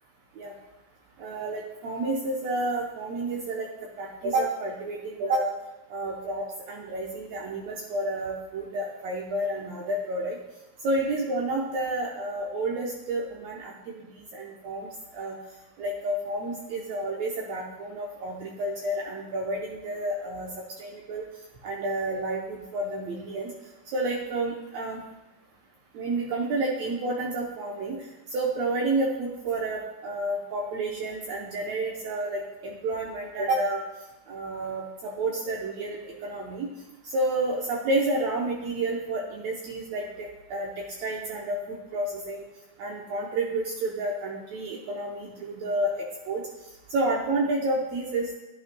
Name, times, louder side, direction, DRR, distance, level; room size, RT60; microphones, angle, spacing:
voice 1, 1.2-3.7 4.0-5.5 5.9-10.4 10.8-14.9 15.1-15.4 15.8-20.5 20.8-21.2 21.6-23.5 23.9-25.0 25.9-28.0 28.3-33.8 34.3-36.7 37.0-42.4 42.8-46.4 46.9-48.3, right 2 dB, 85° right, -2 dB, 1.5 m, -30 dB
11.0 x 10.5 x 2.2 m, 1.0 s
omnidirectional pair, 4.2 m